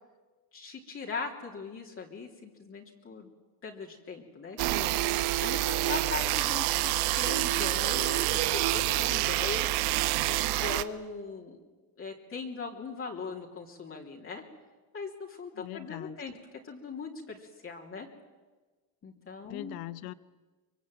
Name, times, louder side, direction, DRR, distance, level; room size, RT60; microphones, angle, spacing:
voice 1, 0.5-3.3 3.6-4.9 5.4-9.7 10.2-11.6 12.0-14.4 14.9-16.3 16.6-18.1 19.0-19.7, left 4 dB, 35° left, -1 dB, 3.3 m, -40 dB
sound 1, 4.6-10.8, right 17 dB, 90° right, 1.0 m, -27 dB
voice 2, 15.5-16.2 19.5-20.1, left 15 dB, 80° left, 16 dB, 0.9 m, -40 dB
24.0 x 23.0 x 9.2 m, 1.3 s
cardioid pair, 115°, 38 cm